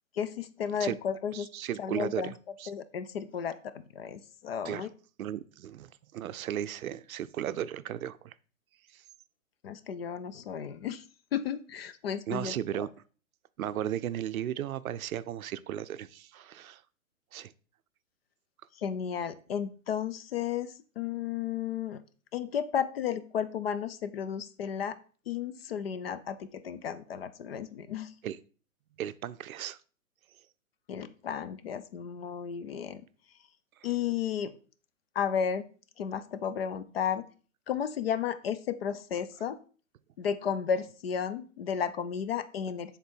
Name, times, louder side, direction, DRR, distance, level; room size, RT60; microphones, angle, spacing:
voice 1, 0.1-1.5 1.8-2.3 2.7-4.9 9.6-11.0 11.3-12.9 18.8-22.0 22.3-25.0 25.3-28.1 30.9-33.0 33.8-34.6 35.2-35.7 36.0-37.2 37.7-39.6 40.2-43.0, left 8 dB, 45° left, 0.5 m, -33 dB
voice 2, 1.3-2.7 4.6-4.9 5.2-8.3 8.9-9.0 12.3-12.9 13.6-16.8 17.3-17.5 28.2-28.4 29.0-29.8, right 11 dB, 80° right, 0.6 m, -35 dB
6.8 x 3.8 x 4.4 m
hypercardioid pair, 145°, 42 cm